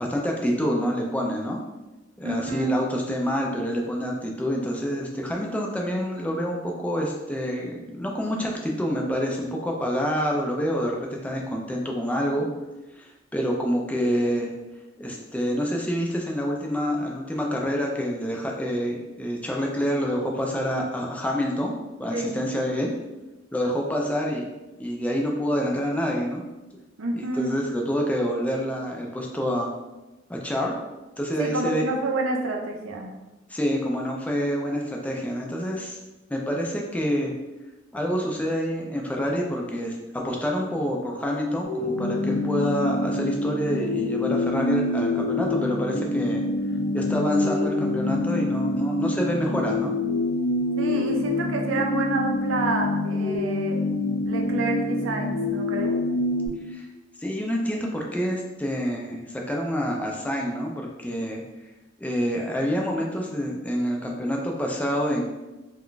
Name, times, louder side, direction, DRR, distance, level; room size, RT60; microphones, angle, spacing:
voice 1, 0.0-1.6 2.2-12.5 13.0-14.5 15.0-21.7 22.0-22.9 23.5-24.5 24.8-26.4 27.1-29.7 30.3-30.7 31.2-31.8 33.5-36.0 36.3-37.3 37.9-40.0 40.2-46.4 46.9-49.9 56.7-56.9 57.2-61.4 62.0-65.2, equal, 5° left, -1 dB, 0.3 m, -27 dB
voice 2, 2.2-2.8 22.1-22.3 27.0-27.6 31.4-33.1 50.8-53.8 54.3-56.0, right 2 dB, 80° right, 2 dB, 0.5 m, -28 dB
sound 1, 41.6-56.5, left 2 dB, 85° left, 0.5 m, -26 dB
2.4 x 2.2 x 3.7 m, 1.1 s
head